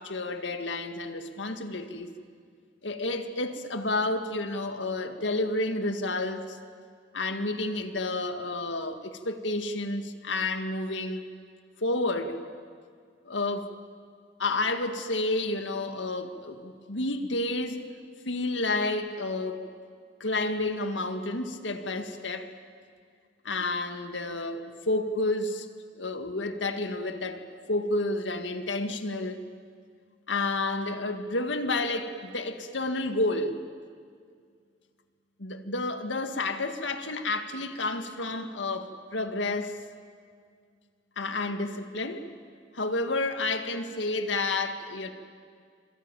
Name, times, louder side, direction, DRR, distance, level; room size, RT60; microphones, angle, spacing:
voice 1, 0.0-2.1 2.8-6.6 7.1-11.3 11.8-12.4 13.3-13.7 14.4-17.9 18.3-19.7 20.2-22.5 23.4-25.7 25.9-29.5 30.3-33.6 35.4-39.8 41.2-42.2 42.7-45.1, left 2 dB, 85° left, 1.9 m, -30 dB
26.5 x 22.5 x 9.1 m
head